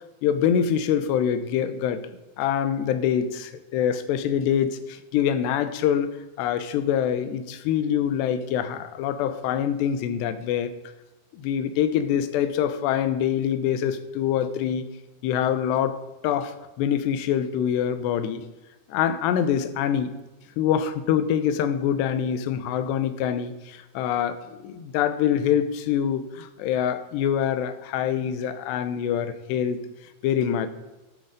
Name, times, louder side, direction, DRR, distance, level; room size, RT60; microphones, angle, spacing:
voice 1, 0.2-2.1 2.4-6.1 6.4-10.7 11.3-14.9 15.2-18.4 18.9-20.1 20.6-29.8 30.2-30.7, left 9 dB, 85° left, 12 dB, 3.0 m, -25 dB
13.0 x 8.6 x 5.1 m, 1.1 s
omnidirectional pair, 4.9 m